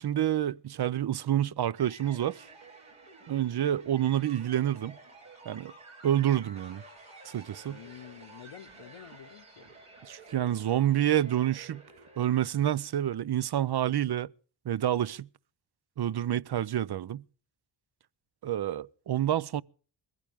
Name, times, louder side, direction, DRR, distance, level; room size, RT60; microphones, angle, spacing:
voice 1, 0.0-2.5 3.3-5.0 5.5-5.7 6.0-6.8 7.2-7.8 10.1-11.8 12.2-14.3 14.6-15.3 16.0-17.2 18.4-19.6, right 11 dB, 50° right, 0.6 m, -28 dB
sound 1, 1.8-12.9, right 3 dB, 75° right, 7.5 m, -52 dB
voice 2, 7.7-9.7, left 10 dB, 80° left, 1.1 m, -49 dB
21.5 x 15.0 x 3.5 m
cardioid pair, 60°, 50 cm